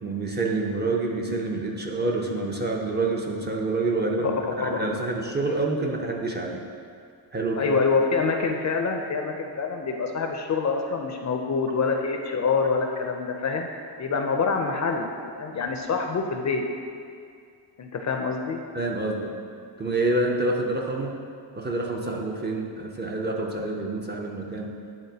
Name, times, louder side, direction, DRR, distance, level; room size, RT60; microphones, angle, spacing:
voice 1, 0.0-6.6 7.3-7.7 18.7-19.3 19.8-21.2 21.6-24.7, right 2 dB, 25° right, 0 dB, 0.5 m, -27 dB
voice 2, 7.5-13.7 14.0-15.1 15.4-16.6 17.8-18.6, left 4 dB, 40° left, 3 dB, 0.5 m, -26 dB
10.5 x 3.6 x 2.8 m, 2.3 s
cardioid pair, 125°, 45 cm